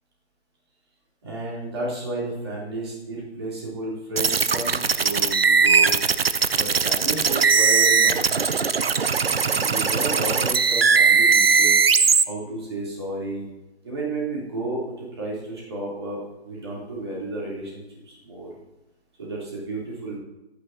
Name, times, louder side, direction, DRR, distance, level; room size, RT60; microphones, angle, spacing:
voice 1, 1.2-5.9 6.6-8.5 9.4-11.8 12.3-13.4 13.8-18.5 19.2-20.2, right 2 dB, 25° right, -5 dB, 3.3 m, -32 dB
sound 1, 4.2-12.2, right 5 dB, 60° right, 0.7 m, -19 dB
25.5 x 9.7 x 2.8 m, 0.97 s
hypercardioid pair, 175°, 33 cm